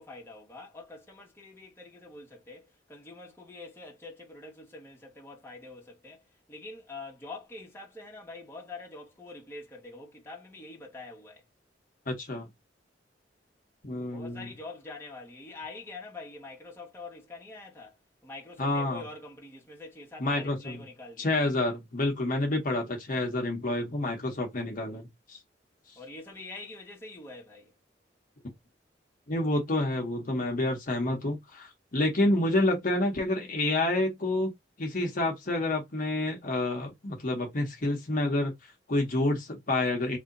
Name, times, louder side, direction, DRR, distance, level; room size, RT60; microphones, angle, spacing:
voice 1, 0.0-6.2 6.5-11.4 14.1-18.0 18.2-21.4 25.9-27.7, left 3 dB, 15° left, 1.4 m, -45 dB
voice 2, 12.1-12.5 13.8-14.5 18.6-19.0 20.2-20.8 21.2-25.4 25.9-26.0 29.3-34.5 34.8-40.2, left 2 dB, 50° left, 1.0 m, -28 dB
3.3 x 2.8 x 3.8 m
head